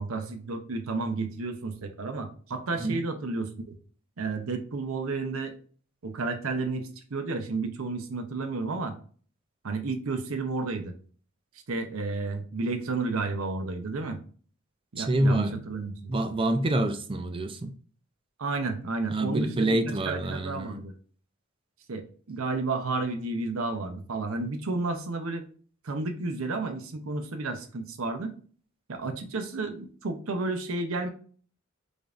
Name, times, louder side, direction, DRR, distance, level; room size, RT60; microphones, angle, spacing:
voice 1, 0.0-3.8 4.2-5.5 6.0-8.9 9.6-10.9 11.7-14.2 14.9-16.1 18.4-20.9 21.9-25.5 25.8-28.3 28.9-31.1, right 3 dB, 80° right, 0.7 m, -32 dB
voice 2, 15.0-15.6 16.1-17.7 19.1-20.8, right 1 dB, 25° right, 0.4 m, -27 dB
5.0 x 2.6 x 2.4 m
head